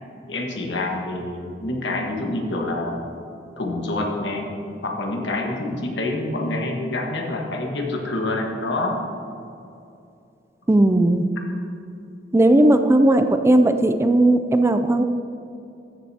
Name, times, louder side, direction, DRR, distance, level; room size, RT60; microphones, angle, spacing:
voice 1, 0.3-3.1 3.6-4.5 4.8-9.0, left 2 dB, 85° left, 0 dB, 1.5 m, -27 dB
voice 2, 10.7-11.3 12.3-15.0, right 1 dB, 15° right, 8 dB, 0.3 m, -16 dB
14.0 x 7.7 x 2.8 m, 2.6 s
head